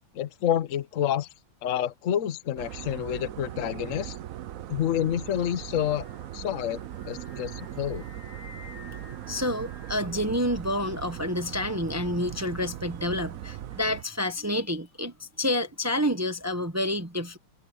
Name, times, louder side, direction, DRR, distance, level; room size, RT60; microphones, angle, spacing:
voice 1, 0.1-1.3 1.6-4.2 4.7-6.1 6.3-6.8 7.1-8.1, left 10 dB, 55° left, 0.9 m, -28 dB
sound 1, 2.6-14.0, right 12 dB, 75° right, 0.7 m, -39 dB
Singing, 5.4-10.5, left 5 dB, 75° left, 3.4 m, -51 dB
voice 2, 9.3-17.4, left 1 dB, 20° right, 0.4 m, -29 dB
omnidirectional pair, 2.2 m